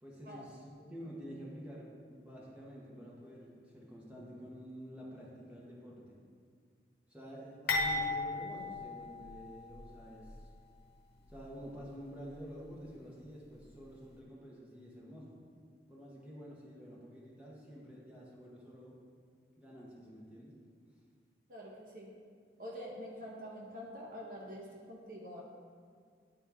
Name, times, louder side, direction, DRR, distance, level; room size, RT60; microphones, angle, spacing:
voice 1, 0.0-6.2 7.1-10.5 11.3-15.4 15.9-19.0 19.6-20.5, equal, 5° right, -7 dB, 1.3 m, -49 dB
sound 1, 7.7-9.8 10.2-10.4 11.2-11.4, left 2 dB, 65° left, 1.0 m, -35 dB
voice 2, 21.5-22.1 22.6-25.4, equal, 50° right, -3 dB, 1.0 m, -46 dB
9.9 x 4.5 x 3.6 m, 2.1 s
head